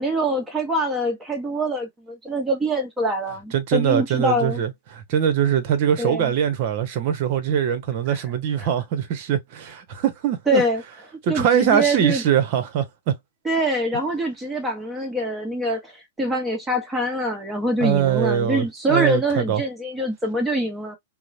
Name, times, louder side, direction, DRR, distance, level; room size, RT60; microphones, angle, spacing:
voice 1, 0.0-4.6 6.0-6.3 8.1-8.2 8.6-8.7 10.5-10.8 11.3-12.2 13.4-15.9 16.2-21.0, right 1 dB, 10° right, 1.0 m, -24 dB
voice 2, 3.5-10.6 11.2-13.1 17.8-19.6, right 9 dB, 50° right, 0.8 m, -22 dB
2.8 x 2.0 x 2.5 m
hypercardioid pair, 115°, 0 cm